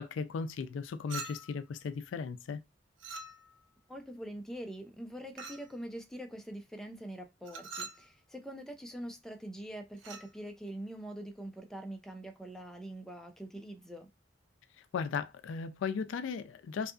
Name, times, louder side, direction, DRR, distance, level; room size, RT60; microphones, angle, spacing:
voice 1, 0.0-2.6 14.8-16.9, left 5 dB, 85° left, 0.3 m, -36 dB
Chink clink, 1.1-1.7 3.0-3.7 5.4-5.7 7.4-8.1 10.0-10.3, right 3 dB, 70° right, 0.4 m, -44 dB
voice 2, 3.9-14.1, right 1 dB, 5° left, 0.4 m, -44 dB
2.7 x 2.4 x 2.3 m
head